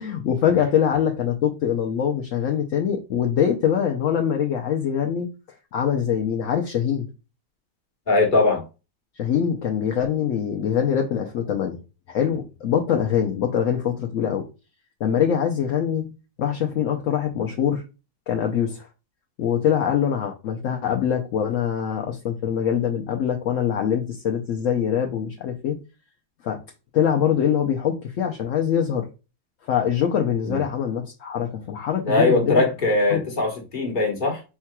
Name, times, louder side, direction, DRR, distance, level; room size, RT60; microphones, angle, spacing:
voice 1, 0.0-5.3 5.7-7.1 9.1-11.8 12.1-14.5 15.0-16.1 16.4-17.8 18.3-18.9 19.4-25.8 26.4-26.6 26.9-29.1 29.7-32.7 33.1-33.2, left 8 dB, 65° left, 0.9 m, -23 dB
voice 2, 8.1-8.6 30.4-30.6 32.0-34.4, left 2 dB, 35° left, 1.4 m, -21 dB
4.7 x 4.4 x 2.2 m
omnidirectional pair, 1.6 m